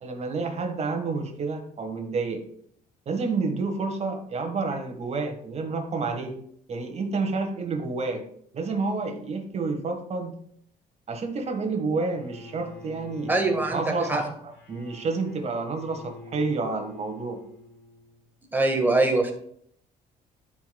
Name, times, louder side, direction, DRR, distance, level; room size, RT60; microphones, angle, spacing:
voice 1, 0.0-2.4 3.0-6.4 6.7-8.2 8.5-10.4 11.1-13.3 13.6-17.4, right 3 dB, 40° right, 5 dB, 1.5 m, -29 dB
Bowed string instrument, 12.1-18.3, left 2 dB, 75° left, 2.7 m, -47 dB
voice 2, 13.3-13.8 14.1-14.2 18.5-19.3, right 2 dB, 10° right, 2 dB, 1.5 m, -22 dB
12.0 x 5.2 x 2.3 m, 0.67 s
cardioid pair, 110°, 17 cm